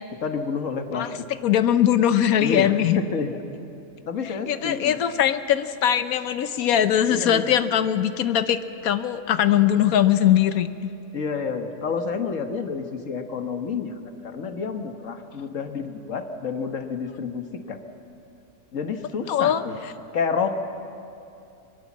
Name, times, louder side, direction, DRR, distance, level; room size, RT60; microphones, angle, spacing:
voice 1, 0.1-1.3 2.4-3.4 4.1-5.0 7.1-7.6 11.1-17.8 18.7-19.8 20.1-20.6, left 5 dB, 65° left, 6 dB, 1.7 m, -29 dB
voice 2, 1.4-3.0 4.5-8.6 8.8-10.7 19.3-19.6, left 10 dB, 85° left, 11 dB, 1.2 m, -21 dB
23.0 x 23.0 x 7.3 m, 2.7 s
omnidirectional pair, 1.5 m